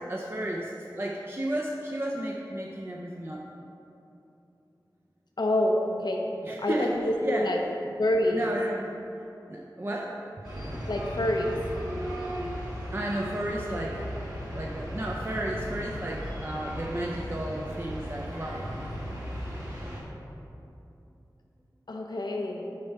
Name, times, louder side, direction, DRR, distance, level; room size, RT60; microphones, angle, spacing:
voice 1, 0.1-3.5 6.4-6.9 7.2-7.5 8.2-8.9 9.5-10.2 12.9-14.1 14.5-18.8, right 1 dB, 30° right, -2 dB, 0.5 m, -33 dB
voice 2, 5.4-6.3 6.6-7.6 8.0-8.5 10.9-11.6 21.9-22.6, left 1 dB, 70° left, 1 dB, 0.7 m, -27 dB
sound 1, 10.4-20.0, equal, 50° right, 1.7 m, -36 dB
6.5 x 5.5 x 4.6 m, 2.8 s
wide cardioid pair, 70°, 7 cm